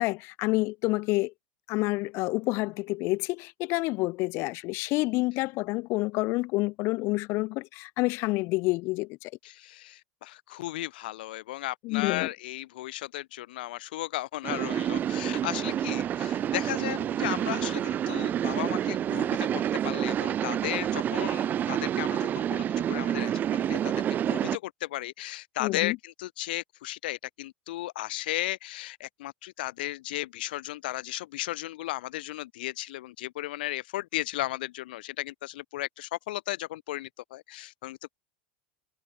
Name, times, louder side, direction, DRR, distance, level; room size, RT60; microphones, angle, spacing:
voice 1, 0.0-1.3 1.7-9.3 11.8-12.3 25.6-26.0, left 23 dB, 55° left, 1.6 m, -28 dB
voice 2, 9.4-38.2, left 16 dB, 75° left, 2.1 m, -35 dB
sound 1, 14.4-24.6, right 10 dB, 35° right, 3.3 m, -28 dB
hypercardioid pair, 105°, 5 cm